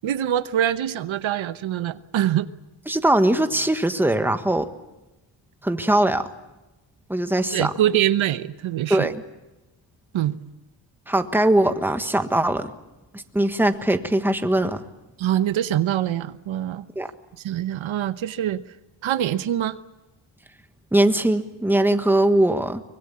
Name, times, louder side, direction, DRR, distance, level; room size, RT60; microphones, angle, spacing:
voice 1, 0.0-2.5 7.5-9.1 10.1-10.4 15.2-16.8 17.4-18.6 19.0-19.8, right 11 dB, 75° right, 13 dB, 1.0 m, -24 dB
voice 2, 2.9-4.7 5.6-6.3 7.1-7.7 8.9-9.2 11.1-12.7 13.1-14.8 16.9-17.1 20.9-22.8, right 1 dB, 5° right, 8 dB, 1.5 m, -21 dB
24.5 x 22.0 x 8.6 m, 1.0 s
cardioid pair, 115°, 48 cm